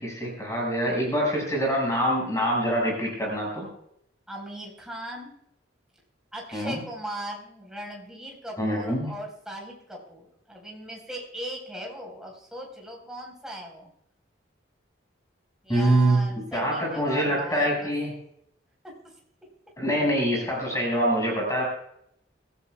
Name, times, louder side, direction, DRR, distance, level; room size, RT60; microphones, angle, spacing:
voice 1, 0.0-3.7 6.5-6.8 8.6-9.1 15.7-18.1 19.8-21.6, right 1 dB, 15° left, -1 dB, 5.8 m, -25 dB
voice 2, 4.3-5.3 6.3-13.9 15.6-17.9 18.8-19.1, right 1 dB, 5° right, -1 dB, 4.4 m, -39 dB
25.5 x 14.0 x 2.3 m, 0.74 s
head